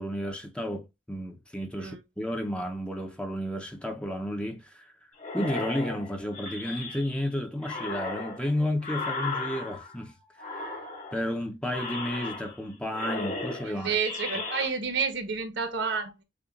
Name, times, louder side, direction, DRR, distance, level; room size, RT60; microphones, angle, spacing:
voice 1, 0.0-4.9 5.3-10.1 10.4-10.7 11.1-13.9, equal, 5° left, 0.7 m, -32 dB
sound 1, 5.2-7.3 7.6-10.0 10.4-11.3 11.7-12.7 12.9-14.7, left 3 dB, 45° left, 1.8 m, -36 dB
voice 2, 13.6-16.2, right 5 dB, 70° right, 1.1 m, -30 dB
6.8 x 2.4 x 2.4 m
head